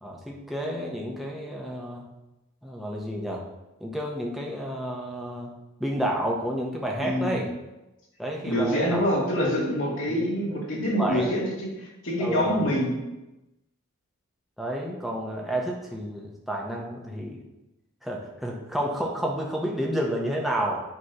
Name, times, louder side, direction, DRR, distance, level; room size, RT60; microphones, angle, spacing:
voice 1, 0.0-2.0 2.6-3.4 3.8-5.5 5.8-7.5 8.2-9.1 10.1-10.3 11.0-11.5 12.2-12.7 14.6-17.4 18.0-20.8, equal, ahead, -2 dB, 1.1 m, -30 dB
voice 2, 7.0-7.4 8.4-12.9, equal, 65° left, -4 dB, 2.5 m, -26 dB
9.6 x 3.3 x 5.7 m, 0.99 s
head